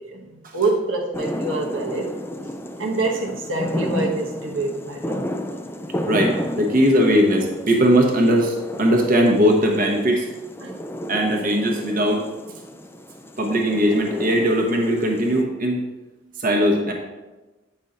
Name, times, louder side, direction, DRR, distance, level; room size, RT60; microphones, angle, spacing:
voice 1, 0.0-2.1 2.8-5.2 10.6-10.8, right 2 dB, 80° right, 0 dB, 1.1 m, -26 dB
sound 1, 1.1-15.4, equal, 10° left, 0.4 m, -32 dB
voice 2, 6.1-10.3 11.1-12.2 13.4-15.8 16.4-16.9, equal, 45° right, 1 dB, 1.0 m, -19 dB
8.6 x 5.5 x 3.9 m, 1.2 s
head